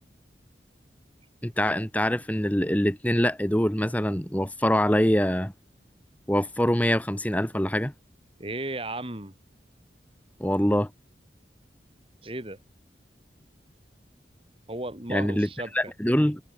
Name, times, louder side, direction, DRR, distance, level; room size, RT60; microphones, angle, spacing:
voice 1, 1.4-5.5 6.3-7.9 10.4-10.9 15.1-15.5 15.7-16.4, equal, 10° left, 1.7 m, -24 dB
voice 2, 8.4-9.3 12.2-12.6 14.7-15.9, right 2 dB, 30° right, 2.8 m, -35 dB
head